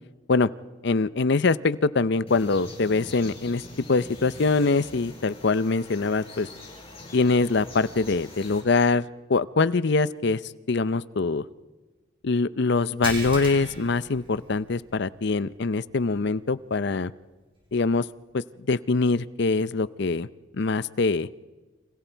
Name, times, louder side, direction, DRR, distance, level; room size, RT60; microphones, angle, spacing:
voice 1, 0.8-6.5 7.1-10.4 10.7-11.5 12.2-17.1 17.7-18.1 18.3-20.3 20.5-21.3, left 3 dB, 60° left, 17 dB, 0.6 m, -24 dB
sound 1, 2.3-8.6, left 1 dB, 30° left, 6.2 m, -43 dB
sound 2, 13.0-14.9 15.3-15.5 15.9-16.0 17.7-17.8, right 2 dB, 30° right, 6.6 m, -36 dB
30.0 x 26.0 x 4.6 m, 1.3 s
head